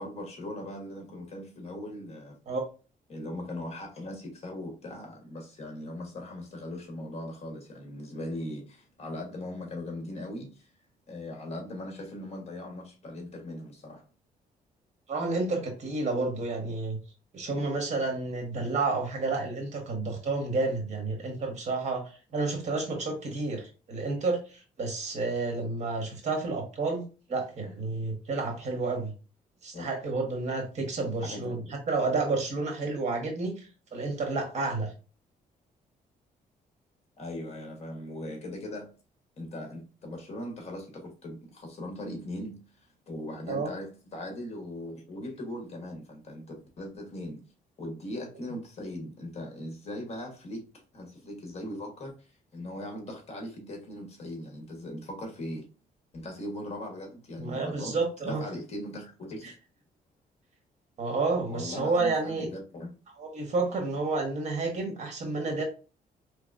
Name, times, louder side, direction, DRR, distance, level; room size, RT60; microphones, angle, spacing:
voice 1, 0.0-2.4 3.1-10.7 11.1-14.0 29.7-29.9 31.2-31.7 37.2-38.9 39.4-42.6 43.1-47.4 47.8-50.6 50.9-55.7 56.1-59.5 61.5-62.9, left 1 dB, 45° left, 1.3 m, -39 dB
voice 2, 15.1-17.0 17.3-29.1 29.6-34.9 43.5-43.7 57.4-58.4 59.4-59.5 61.0-62.5 63.2-65.6, right 3 dB, 50° right, 1.3 m, -30 dB
4.0 x 3.2 x 2.5 m
cardioid pair, 145°, 15 cm